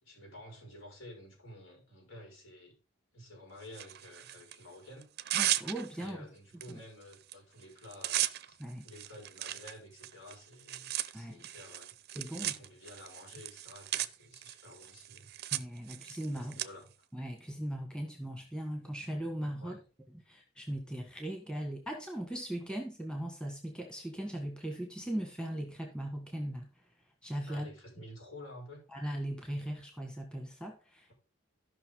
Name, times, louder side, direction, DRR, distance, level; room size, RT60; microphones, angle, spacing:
voice 1, 0.0-2.7 3.1-5.1 6.0-11.9 12.3-15.3 16.3-16.9 19.6-19.8 27.5-28.8, left 1 dB, 70° left, 0 dB, 6.0 m, -51 dB
Tearing, 3.7-4.6 5.0-6.1 6.6-6.7 7.0-7.3 7.6-16.7, right 13 dB, 50° right, 0.6 m, -37 dB
voice 2, 5.3-6.2 6.7-6.8 8.6-8.9 11.1-11.4 12.2-12.6 15.5-16.5 17.1-19.8 20.3-26.7 27.2-27.7 28.9-31.1, right 1 dB, 5° left, 2 dB, 1.7 m, -38 dB
15.0 x 5.8 x 3.9 m, 0.34 s
head